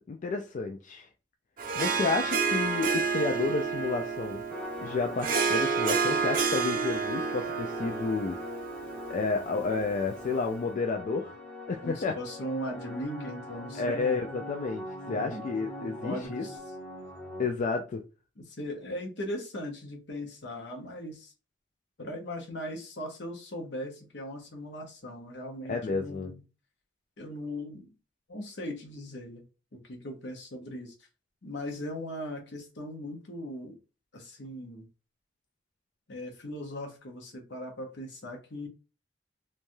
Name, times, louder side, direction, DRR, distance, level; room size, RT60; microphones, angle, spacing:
voice 1, 0.1-1.1 1.8-4.4 4.8-8.4 9.1-11.3 11.7-12.1 13.7-16.4 17.4-18.0 25.7-26.3, left 4 dB, 45° left, 0.3 m, -31 dB
Harp, 1.6-10.2, right 5 dB, 50° right, 0.5 m, -30 dB
sound 1, 4.5-17.5, left 1 dB, 10° left, 0.7 m, -41 dB
voice 2, 11.8-14.2 15.1-15.4 15.8-16.6 18.4-21.3 22.0-26.4 27.2-27.9 28.3-29.4 29.7-30.9 31.4-33.8 34.1-34.8 36.1-38.7, equal, 70° left, 0.8 m, -39 dB
3.2 x 2.2 x 2.6 m
head